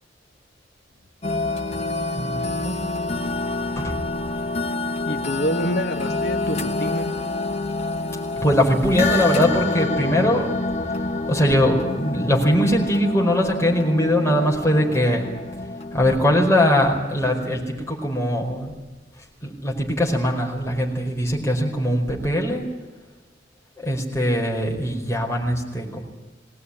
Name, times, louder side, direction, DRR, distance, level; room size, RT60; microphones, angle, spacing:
sound 1, 1.2-16.5, left 2 dB, 35° left, 1.2 m, -27 dB
voice 1, 2.1-2.8 3.8-4.0 5.0-5.6 8.3-10.5 10.9-11.0 11.3-15.3 15.9-18.7 19.4-22.6 23.8-26.0, equal, 15° left, -1 dB, 4.9 m, -21 dB
voice 2, 5.0-7.3, equal, 55° left, 4 dB, 1.3 m, -27 dB
20.5 x 18.5 x 9.9 m, 1.2 s
head